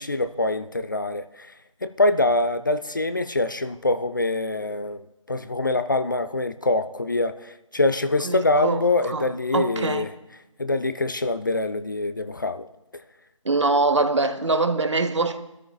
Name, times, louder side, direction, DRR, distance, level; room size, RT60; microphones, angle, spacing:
voice 1, 0.0-1.5 1.8-10.1 10.6-12.7 12.9-13.0, left 2 dB, 40° left, 0.4 m, -24 dB
voice 2, 8.2-9.3 9.5-10.0 13.4-15.4, right 3 dB, 60° right, 1.0 m, -23 dB
22.5 x 13.0 x 2.3 m
figure-of-eight pair, 160°, 17 cm